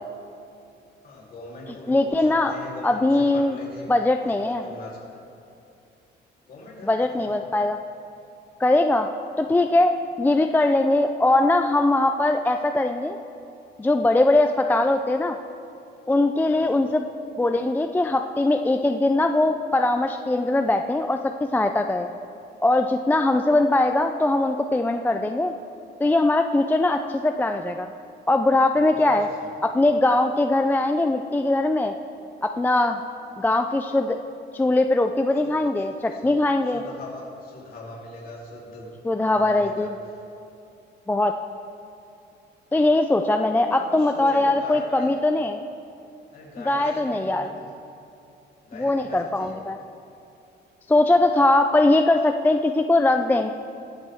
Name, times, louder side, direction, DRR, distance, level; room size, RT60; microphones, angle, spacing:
voice 1, 1.0-3.9 4.2-5.2 6.5-7.4 16.6-16.7 28.7-29.5 35.4-35.7 36.1-36.3 36.7-38.9 39.2-39.9 43.3-45.1 46.3-47.7 48.6-49.6 51.4-51.6, left 2 dB, 50° left, -4 dB, 3.2 m, -41 dB
voice 2, 1.9-2.5 2.8-3.6 3.9-4.6 6.8-7.8 8.6-9.1 9.4-13.2 13.8-15.4 16.1-17.0 17.4-22.1 22.6-25.5 26.0-27.9 28.3-29.3 29.6-31.9 32.4-33.0 33.4-34.2 34.5-36.8 39.0-39.9 41.1-41.3 42.7-45.6 46.7-47.5 48.8-49.8 50.9-53.5, left 2 dB, 10° left, 6 dB, 0.3 m, -21 dB
22.0 x 8.1 x 3.5 m, 2.6 s
cardioid pair, 135°, 19 cm